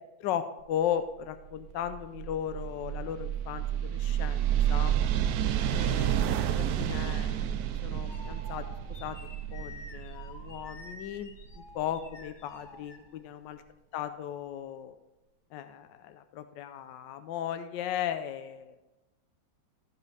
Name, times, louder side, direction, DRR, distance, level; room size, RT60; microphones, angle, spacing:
voice 1, 0.2-5.0 5.7-8.7 9.0-9.2 9.5-13.6 13.9-14.9 15.5-18.8, left 10 dB, 75° left, 10 dB, 1.2 m, -36 dB
sound 1, 1.4-12.1, right 10 dB, 75° right, 0.8 m, -31 dB
sound 2, 7.1-13.5, left 3 dB, 40° left, 0.7 m, -50 dB
15.0 x 5.1 x 4.1 m, 1.0 s
omnidirectional pair, 2.1 m